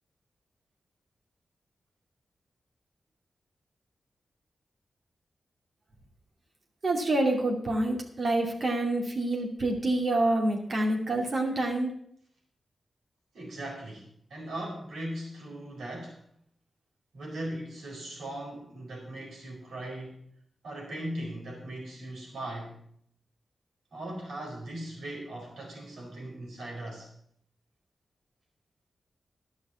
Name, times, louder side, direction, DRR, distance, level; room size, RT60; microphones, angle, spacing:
voice 1, 6.8-11.9, right 2 dB, 55° right, 1 dB, 2.5 m, -27 dB
voice 2, 13.3-16.2 17.1-20.2 20.6-22.8 23.9-27.1, right 1 dB, 85° right, -2 dB, 4.3 m, -39 dB
11.0 x 6.1 x 7.1 m, 0.67 s
cardioid pair, 45°, 0 cm